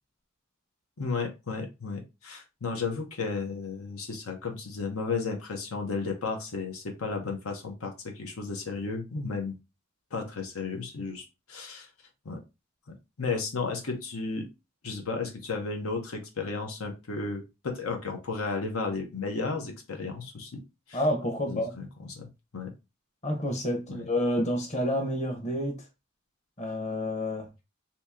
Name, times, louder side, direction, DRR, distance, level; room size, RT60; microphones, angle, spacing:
voice 1, 1.0-9.6 10.1-11.9 12.2-12.4 13.2-14.5 14.8-20.6 20.9-21.0 21.5-22.3 22.5-22.7 23.9-24.0, left 4 dB, 85° left, 0.9 m, -33 dB
voice 2, 20.9-21.7 23.2-25.8 26.6-27.5, left 1 dB, 35° left, 0.9 m, -29 dB
2.9 x 2.8 x 3.5 m
head